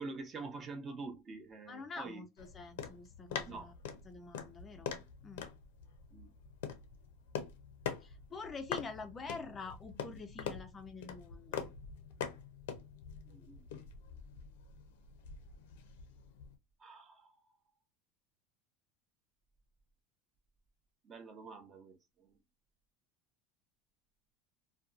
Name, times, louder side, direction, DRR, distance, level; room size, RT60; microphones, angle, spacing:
voice 1, 0.0-2.2 3.5-3.7 6.1-6.3 13.3-13.6 16.8-17.4 21.0-22.4, right 3 dB, 25° right, 0.6 m, -46 dB
voice 2, 1.7-3.7 4.1-5.5 8.0-11.7, left 4 dB, 25° left, 0.4 m, -47 dB
sound 1, 2.4-16.6, left 7 dB, 85° left, 0.5 m, -45 dB
2.7 x 2.2 x 2.4 m
supercardioid pair, 135°, 0 cm